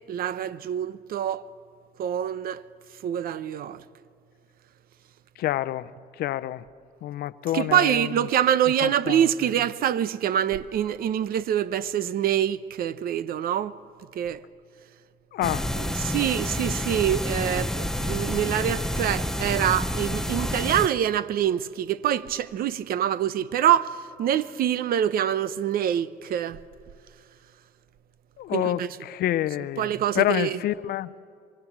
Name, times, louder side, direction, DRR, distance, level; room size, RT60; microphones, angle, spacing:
voice 1, 0.1-1.5 2.0-2.6 3.0-3.8 7.5-13.8 14.1-14.4 16.0-26.6 28.5-28.9 29.8-30.6, right 10 dB, 60° right, 0.8 m, -25 dB
voice 2, 5.4-6.6 7.0-8.1 8.8-9.5 15.3-15.7 28.4-31.1, left 13 dB, 70° left, 0.6 m, -28 dB
sound 1, 15.4-20.9, left 1 dB, 5° left, 0.7 m, -29 dB
26.0 x 22.5 x 7.3 m
cardioid pair, 110°, 17 cm